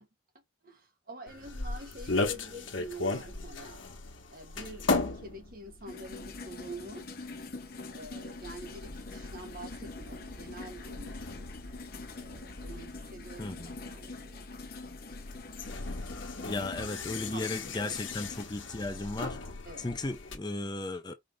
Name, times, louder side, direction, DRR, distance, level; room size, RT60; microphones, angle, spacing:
voice 1, 0.6-3.8 4.3-7.1 7.9-11.5 12.1-14.5 16.6-18.0 19.6-19.9, right 1 dB, 50° right, 1.5 m, -47 dB
sound 1, 1.3-20.4, left 3 dB, 85° left, 1.2 m, -38 dB
sound 2, 5.9-18.4, left 3 dB, 50° left, 0.9 m, -45 dB
voice 2, 13.4-13.7 16.4-19.4 19.8-21.1, left 2 dB, 20° left, 0.6 m, -35 dB
5.1 x 2.8 x 3.6 m
head